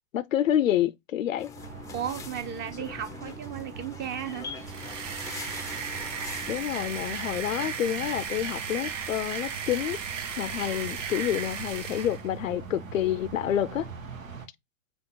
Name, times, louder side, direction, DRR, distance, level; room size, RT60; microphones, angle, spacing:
voice 1, 0.1-1.5 6.5-10.0 10.4-13.9, left 11 dB, 85° left, 0.5 m, -28 dB
sound 1, 1.4-6.6, left 5 dB, 10° left, 0.5 m, -42 dB
sound 2, 1.5-14.5, right 6 dB, 90° right, 1.1 m, -43 dB
voice 2, 1.9-4.5, right 9 dB, 25° right, 0.8 m, -35 dB
sound 3, 4.5-12.3, right 7 dB, 70° right, 0.9 m, -35 dB
5.2 x 2.4 x 3.6 m
hypercardioid pair, 105°, 39 cm